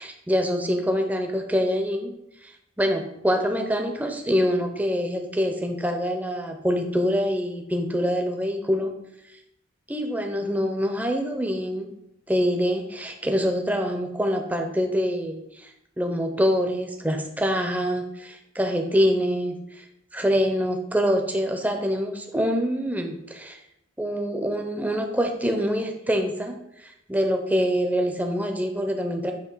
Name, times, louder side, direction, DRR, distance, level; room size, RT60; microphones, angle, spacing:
voice 1, 0.0-2.1 2.4-8.9 9.9-11.9 12.3-19.8 20.1-23.6 24.0-29.3, equal, 10° right, 4 dB, 0.6 m, -25 dB
8.1 x 2.8 x 5.5 m, 0.84 s
head